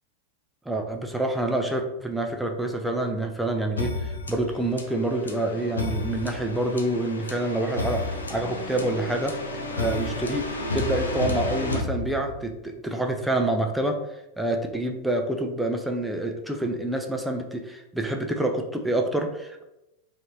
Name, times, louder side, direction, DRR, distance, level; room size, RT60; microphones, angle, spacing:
voice 1, 0.7-9.3 9.7-14.0 14.4-19.6, right 1 dB, 5° right, 3 dB, 0.3 m, -27 dB
sound 1, 3.8-12.6, left 2 dB, 75° left, 0.4 m, -31 dB
2.7 x 2.5 x 2.9 m, 0.91 s
figure-of-eight pair, 90°, 0 cm